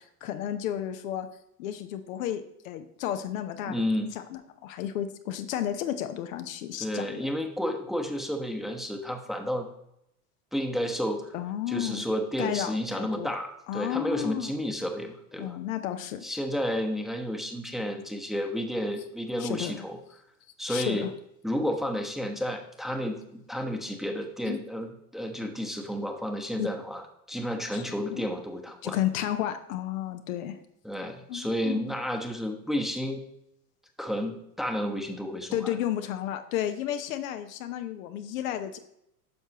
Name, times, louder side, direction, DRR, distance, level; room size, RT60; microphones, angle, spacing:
voice 1, 0.2-1.3 1.6-3.8 4.3-7.3 11.3-12.0 12.4-13.3 13.7-14.5 15.4-16.2 19.4-19.8 20.7-21.1 24.5-24.6 26.6-26.7 27.7-28.3 28.8-30.6 31.3-31.9 35.5-38.8, left 11 dB, 60° left, 8 dB, 0.8 m, -32 dB
voice 2, 3.7-4.1 6.8-9.7 10.5-11.3 11.7-15.6 16.2-20.0 20.6-21.1 21.4-29.0 30.8-33.2 34.0-35.8, equal, ahead, 4 dB, 1.0 m, -31 dB
9.8 x 6.6 x 2.9 m, 0.78 s
figure-of-eight pair, 80°, 46 cm